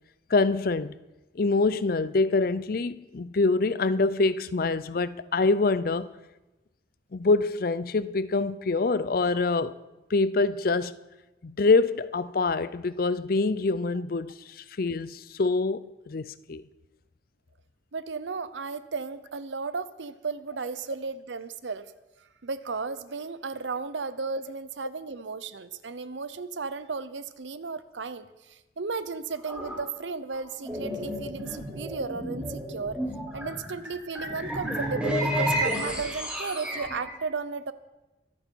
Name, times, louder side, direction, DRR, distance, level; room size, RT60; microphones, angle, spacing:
voice 1, 0.3-0.9 1.3-6.1 7.1-9.8 10.1-10.9 11.4-16.6, left 3 dB, 50° left, 0.5 m, -25 dB
voice 2, 17.9-21.9 22.4-33.0 33.3-37.7, right 4 dB, 80° right, 0.8 m, -34 dB
sound 1, 29.5-29.8 30.4-37.1, equal, 5° right, 4.4 m, -31 dB
24.0 x 9.1 x 4.6 m
head